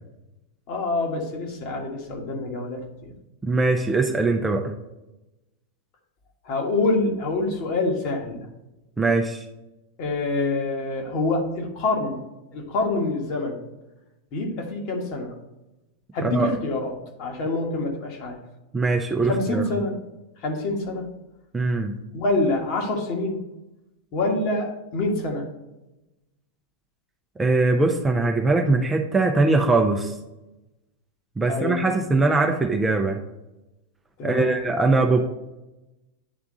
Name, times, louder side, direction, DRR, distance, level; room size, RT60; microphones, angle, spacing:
voice 1, 0.7-3.1 6.4-8.5 10.0-12.2 12.5-13.6 14.3-15.3 16.1-18.4 19.3-20.0 20.4-21.1 22.1-23.4 24.1-25.4 31.4-31.9 34.2-34.6, left 2 dB, 45° left, 1 dB, 1.5 m, -26 dB
voice 2, 3.4-4.7 9.0-9.4 16.2-16.5 18.7-19.6 21.5-22.0 27.4-30.1 31.4-33.2 34.2-35.2, right 3 dB, 10° right, 3 dB, 0.6 m, -21 dB
9.2 x 3.5 x 3.8 m, 0.98 s
figure-of-eight pair, 90°, 0 cm